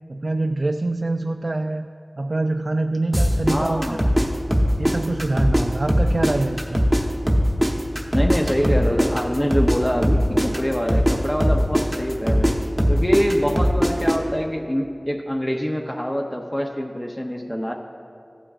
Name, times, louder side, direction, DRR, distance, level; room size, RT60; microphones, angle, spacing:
voice 1, 0.1-1.9 2.2-4.0 4.8-6.8, right 2 dB, 55° right, 5 dB, 0.3 m, -25 dB
sound 1, 3.1-5.6 5.9-9.8 10.0-14.2, equal, 10° right, 1.0 m, -19 dB
voice 2, 3.5-4.0 8.1-12.6 12.9-17.7, equal, 15° left, 1 dB, 0.6 m, -25 dB
15.5 x 8.7 x 2.4 m, 2.4 s
wide cardioid pair, 60°, 0 cm